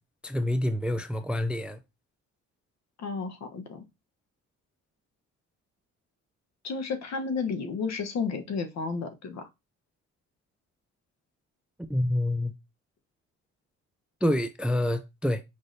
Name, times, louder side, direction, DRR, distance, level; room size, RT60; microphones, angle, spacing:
voice 1, 0.2-1.8 11.9-12.5 14.2-15.4, left 1 dB, 5° right, 0.3 m, -27 dB
voice 2, 3.0-3.8 6.6-9.5, left 5 dB, 60° left, 1.0 m, -32 dB
5.4 x 3.1 x 2.6 m
cardioid pair, 90°, 30 cm